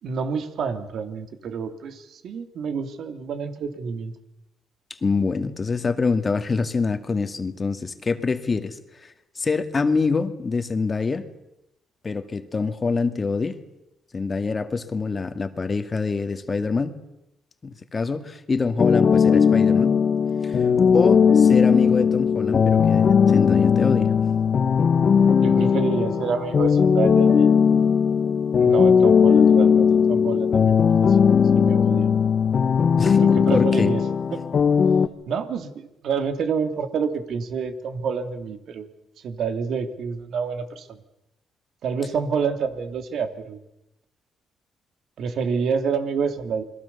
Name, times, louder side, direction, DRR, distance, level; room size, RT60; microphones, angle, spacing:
voice 1, 0.0-4.1 25.4-27.5 28.6-30.7 31.0-31.2 31.5-32.2 33.2-34.0 34.3-34.4 35.3-38.9 39.2-41.0 41.8-43.6 45.2-46.6, right 6 dB, 70° right, 7 dB, 2.8 m, -28 dB
voice 2, 5.0-11.3 12.0-13.6 14.1-16.9 17.6-20.0 20.4-20.6 20.9-24.1 33.0-33.9, left 4 dB, 30° left, 9 dB, 2.1 m, -25 dB
sound 1, 18.8-35.1, left 6 dB, 50° left, 1.7 m, -18 dB
28.5 x 22.0 x 7.0 m, 0.90 s
cardioid pair, 90°, 0 cm